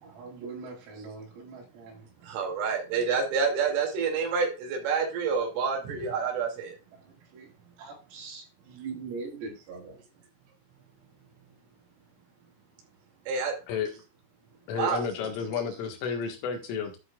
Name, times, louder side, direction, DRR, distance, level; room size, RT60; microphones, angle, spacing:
voice 1, 0.0-2.1 6.9-7.5 7.8-10.0, right 4 dB, 90° right, 6.6 m, -42 dB
voice 2, 2.3-6.7 13.3-13.5 14.8-15.0, right 5 dB, 75° right, 5.1 m, -28 dB
voice 3, 14.7-17.0, left 6 dB, 75° left, 4.2 m, -31 dB
13.0 x 8.3 x 2.4 m
omnidirectional pair, 5.9 m